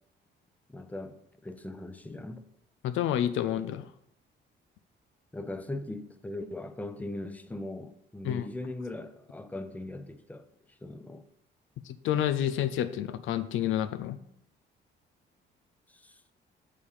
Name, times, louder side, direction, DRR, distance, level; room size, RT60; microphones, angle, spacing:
voice 1, 0.7-1.2 1.4-2.4 5.3-10.4 10.8-11.3 15.9-16.3, left 2 dB, 5° left, 0.6 m, -39 dB
voice 2, 2.8-3.9 8.2-8.4 11.9-14.2, left 11 dB, 80° left, 0.5 m, -29 dB
6.8 x 5.0 x 5.6 m
cardioid pair, 90°, 20 cm